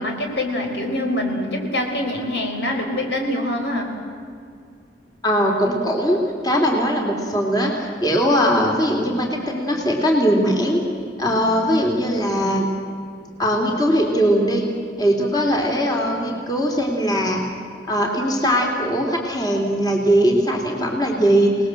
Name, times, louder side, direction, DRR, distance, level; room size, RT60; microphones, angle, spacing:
voice 1, 0.0-3.9, left 1 dB, 75° left, 2 dB, 5.0 m, -24 dB
voice 2, 5.2-10.8 11.2-12.7 13.4-14.6 15.0-17.4 17.9-21.5, equal, 25° left, 0 dB, 3.4 m, -20 dB
28.5 x 19.5 x 7.8 m, 2.3 s
head